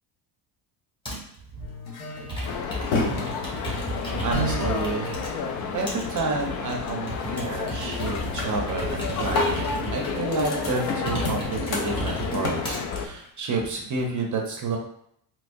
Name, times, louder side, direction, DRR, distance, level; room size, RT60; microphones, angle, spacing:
Computer keyboard, 1.0-1.3 2.1-5.3 5.9-12.8 13.5-14.0, equal, 10° left, 1.4 m, -33 dB
sound 1, 1.6-6.1 6.4-6.9 7.2-7.6 7.9-13.3, left 1 dB, 75° left, 1.1 m, -32 dB
sound 2, 2.4-13.1, left 5 dB, 45° left, 0.4 m, -31 dB
voice 1, 4.2-5.3 5.7-14.8, right 3 dB, 40° right, 1 dB, 0.7 m, -30 dB
4.3 x 2.0 x 2.6 m, 0.70 s
cardioid pair, 105°, 47 cm